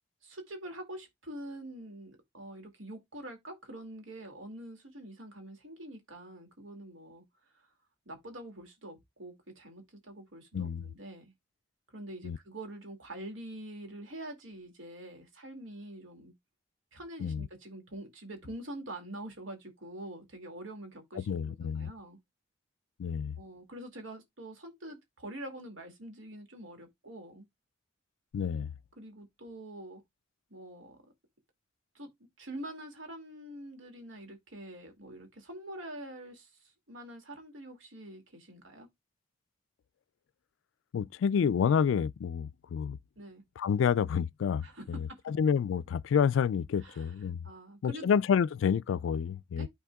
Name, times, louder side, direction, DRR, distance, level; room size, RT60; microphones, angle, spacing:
voice 1, 0.2-7.2 7.5-7.7 8.1-11.3 11.9-16.3 16.9-22.2 23.4-27.5 29.0-30.0 30.5-31.1 31.9-32.1 32.4-38.9 43.2-43.4 44.6-45.2 46.8-48.1 49.6-49.7, right 1 dB, 85° right, 2.3 m, -45 dB
voice 2, 10.5-10.8 12.2-12.4 17.2-17.5 21.2-21.9 23.0-23.3 28.3-28.7 40.9-43.0 43.6-44.6 45.3-47.4 47.8-49.7, left 7 dB, 75° left, 0.3 m, -28 dB
13.0 x 4.3 x 2.3 m
head